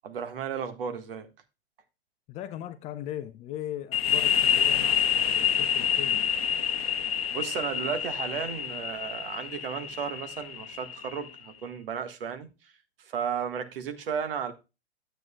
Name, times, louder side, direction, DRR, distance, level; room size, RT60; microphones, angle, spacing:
voice 1, 0.0-1.3 6.8-7.0 7.3-12.7 13.0-14.5, right 7 dB, 60° right, 1.5 m, -34 dB
voice 2, 2.3-6.2, left 12 dB, 20° left, 0.5 m, -39 dB
sound 1, 3.9-11.4, left 8 dB, 70° left, 0.8 m, -27 dB
12.0 x 7.8 x 2.2 m
figure-of-eight pair, 110°, 32 cm